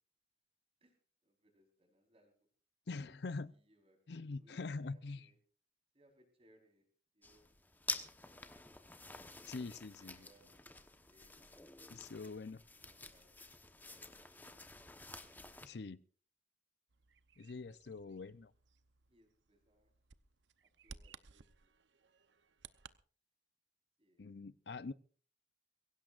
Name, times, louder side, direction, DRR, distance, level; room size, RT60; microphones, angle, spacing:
voice 1, 0.8-2.3 3.0-5.4 5.9-6.9 7.1-7.5 9.5-11.8 12.6-14.2 14.4-14.6 18.0-18.2 19.1-19.9 20.6-21.7 24.0-24.3, right 1 dB, 30° right, 4 dB, 4.3 m, -71 dB
voice 2, 2.9-3.5 4.1-5.3 9.4-10.3 11.9-12.6 15.6-16.0 17.4-18.5 24.2-24.9, left 3 dB, 65° left, 16 dB, 0.5 m, -44 dB
sound 1, 7.2-15.7, left 3 dB, 10° left, 1.0 m, -49 dB
Bird vocalization bird call bird song, 16.9-23.0, right 6 dB, 80° right, 0.8 m, -59 dB
23.0 x 16.5 x 2.5 m, 0.43 s
head